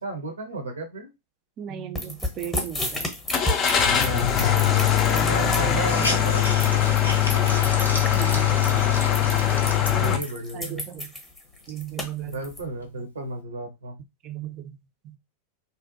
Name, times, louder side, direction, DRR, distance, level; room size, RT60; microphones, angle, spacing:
voice 1, 0.0-1.1 3.9-4.5 5.2-6.9 10.0-10.8 12.2-14.0, right 2 dB, 70° right, 4 dB, 0.7 m, -34 dB
voice 2, 1.6-3.1 5.1-5.4 8.1-8.7 9.9-10.2 10.5-11.1 11.7-12.4 14.2-14.7 15.0-15.2, right 10 dB, 35° right, 7 dB, 0.4 m, -36 dB
sound 1, 2.0-12.6, left 1 dB, 10° left, 0.8 m, -32 dB
Car / Engine starting, 3.3-10.2, left 9 dB, 35° left, 0.4 m, -21 dB
Hiss, 5.5-10.5 11.0-11.1 11.5-12.9, left 1 dB, 80° left, 0.6 m, -34 dB
2.6 x 2.1 x 2.6 m, 0.21 s
figure-of-eight pair, 90°, 0 cm